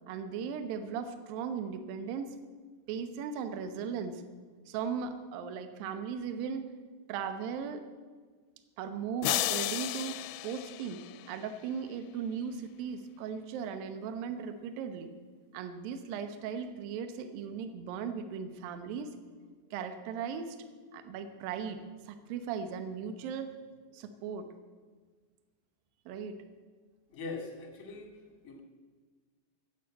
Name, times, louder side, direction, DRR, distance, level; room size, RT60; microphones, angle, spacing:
voice 1, 0.1-2.4 2.9-4.2 4.7-6.7 7.1-7.9 8.8-15.1 15.5-19.2 19.7-20.6 20.9-23.5 23.9-24.5 26.1-26.4, right 6 dB, 70° right, 8 dB, 2.5 m, -37 dB
sound 1, 9.2-11.6, left 16 dB, 85° left, 2.6 m, -34 dB
voice 2, 27.1-28.2 28.4-28.6, left 3 dB, 30° left, 2 dB, 1.6 m, -41 dB
13.0 x 8.3 x 8.6 m, 1.5 s
omnidirectional pair, 4.7 m